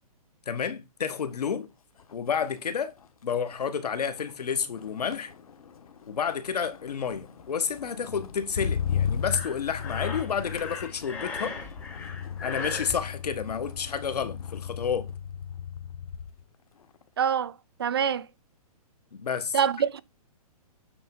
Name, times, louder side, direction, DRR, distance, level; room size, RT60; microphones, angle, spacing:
voice 1, 0.5-1.7 2.1-2.9 3.2-5.3 6.1-11.6 12.4-15.1 19.1-19.5, left 7 dB, 90° left, 1.4 m, -30 dB
Motor vehicle (road), 1.3-1.6 2.0-16.4 16.8-17.2, left 8 dB, 65° left, 1.2 m, -36 dB
Breathing, 9.2-13.0, left 4 dB, 5° left, 0.6 m, -37 dB
voice 2, 17.2-18.3 19.5-20.0, right 7 dB, 40° right, 0.4 m, -26 dB
8.6 x 3.4 x 5.5 m
hypercardioid pair, 175°, 20 cm